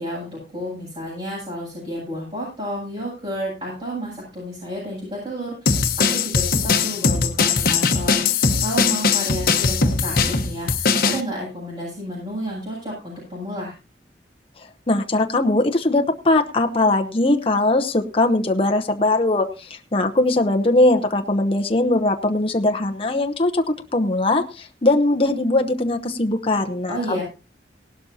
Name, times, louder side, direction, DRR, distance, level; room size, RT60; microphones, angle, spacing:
voice 1, 0.0-13.7 26.9-27.2, equal, 35° right, -7 dB, 7.8 m, -31 dB
sound 1, 5.7-11.2, left 5 dB, 55° left, 1.2 m, -20 dB
voice 2, 14.9-27.2, left 2 dB, 30° left, 4 dB, 0.9 m, -20 dB
18.0 x 12.0 x 2.8 m, 0.31 s
head